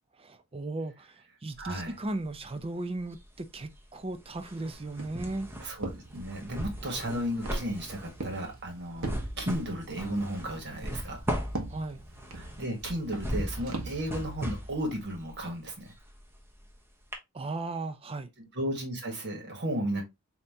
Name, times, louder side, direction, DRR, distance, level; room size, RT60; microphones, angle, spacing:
voice 1, 0.2-5.5 11.7-12.0 17.3-18.3, right 2 dB, 25° right, 0.5 m, -36 dB
sound 1, 1.5-2.7 3.0-16.7 17.1-17.2, equal, 10° right, 1.0 m, -38 dB
voice 2, 1.6-1.9 5.6-11.2 12.3-15.9 18.4-20.0, right 1 dB, 55° right, 1.6 m, -34 dB
Walk footsteps, 4.7-14.1, right 2 dB, 75° right, 1.1 m, -42 dB
5.4 x 2.9 x 2.7 m
head